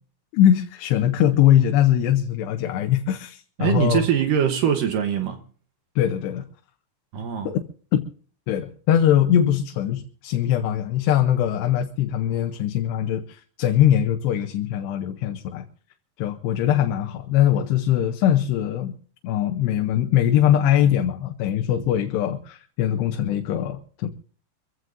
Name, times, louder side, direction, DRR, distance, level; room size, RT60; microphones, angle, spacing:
voice 1, 0.3-4.0 6.0-6.4 7.4-7.6 7.9-8.0 8.5-15.6 16.2-18.9 19.2-24.1, left 11 dB, 85° left, 3.0 m, -21 dB
voice 2, 3.6-5.4 7.1-7.5, right 9 dB, 65° right, 2.4 m, -22 dB
25.5 x 15.5 x 2.6 m
omnidirectional pair, 4.7 m